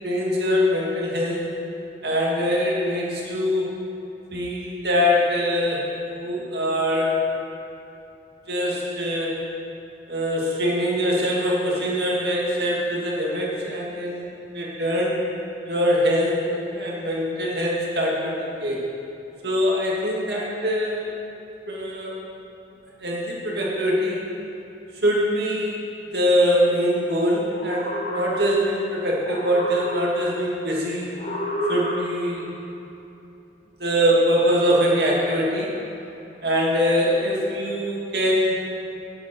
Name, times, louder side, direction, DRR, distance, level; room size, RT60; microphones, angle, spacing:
voice 1, 0.0-1.5 2.0-3.7 4.3-7.2 8.5-9.4 10.1-14.3 14.5-15.2 15.7-18.8 19.4-21.1 21.7-22.2 23.0-24.2 25.0-25.8 26.1-31.1 31.7-32.5 33.8-35.7 36.4-38.5, equal, 65° right, -4 dB, 2.2 m, -23 dB
sound 1, 27.4-28.8 29.2-30.4 31.2-32.5, equal, 35° left, 1.0 m, -30 dB
16.0 x 7.9 x 4.5 m, 2.9 s
head